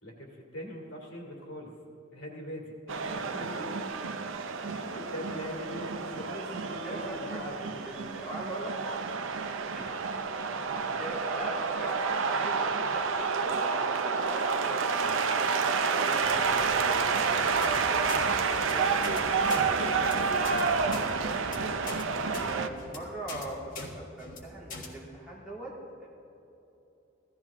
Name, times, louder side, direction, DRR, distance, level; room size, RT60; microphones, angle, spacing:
voice 1, 0.0-1.7 2.1-3.9 4.7-7.8 10.5-11.0 20.6-21.0, equal, 65° left, -1 dB, 2.8 m, -42 dB
sound 1, 2.9-22.7, right 5 dB, 65° right, 0.6 m, -29 dB
voice 2, 6.8-8.7 9.7-10.0 11.0-14.8 15.4-22.1 22.4-25.7 26.0-26.1, right 1 dB, 5° right, -7 dB, 3.0 m, -42 dB
sound 2, 16.2-22.8, equal, 20° left, 2.2 m, -48 dB
sound 3, 17.6-17.8 18.1-18.2 18.5-18.7 19.0-19.2 19.5-19.6 19.9-20.1 20.4-20.6 20.9-21.1 21.4-21.6 21.9-22.0 22.3-22.5 22.8-23.0 23.3-23.4 23.7-23.9 24.2-24.4 24.7-24.9, left 3 dB, 40° left, 1.6 m, -41 dB
16.0 x 13.5 x 3.6 m, 3.0 s
head